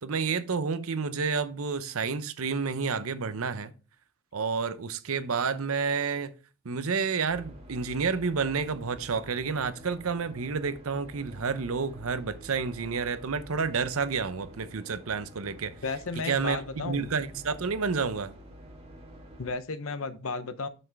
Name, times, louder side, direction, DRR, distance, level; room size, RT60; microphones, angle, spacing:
voice 1, 0.0-3.7 4.3-6.3 6.6-15.7 16.2-18.3, right 5 dB, 70° right, 0.7 m, -30 dB
sound 1, 7.3-19.5, equal, 25° right, 1.6 m, -48 dB
voice 2, 15.8-17.1 19.4-20.7, left 4 dB, 65° left, 0.8 m, -33 dB
7.7 x 6.1 x 3.5 m
head